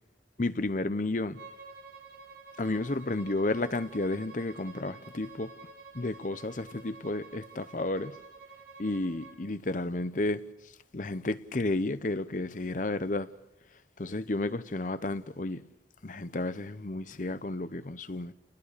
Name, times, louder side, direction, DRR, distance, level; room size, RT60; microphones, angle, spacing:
voice 1, 0.4-1.4 2.6-5.5 5.9-8.1 8.8-10.4 10.9-13.3 14.0-15.6 16.0-18.3, left 2 dB, 45° left, 0.8 m, -32 dB
Bowed string instrument, 1.3-9.4, right 4 dB, 80° right, 5.6 m, -50 dB
29.5 x 20.0 x 6.7 m
head